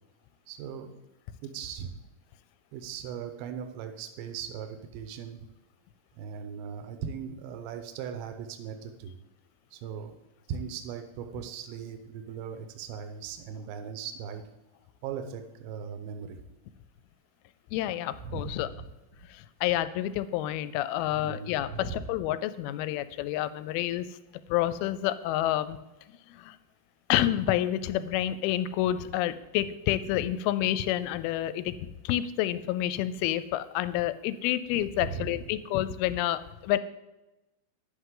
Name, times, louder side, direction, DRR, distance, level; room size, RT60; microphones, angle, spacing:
voice 1, 0.5-1.0 1.4-1.9 2.7-5.5 6.2-9.2 9.7-10.2 10.5-14.4 15.0-16.4 18.2-18.8 21.1-22.1 35.0-35.4, right 7 dB, 80° right, 7 dB, 2.6 m, -39 dB
voice 2, 17.7-18.7 19.3-24.1 24.5-25.8 26.4-26.6 27.1-31.8 32.1-36.8, left 13 dB, 85° left, 14 dB, 2.3 m, -29 dB
11.0 x 7.9 x 3.8 m, 1.0 s
omnidirectional pair, 4.5 m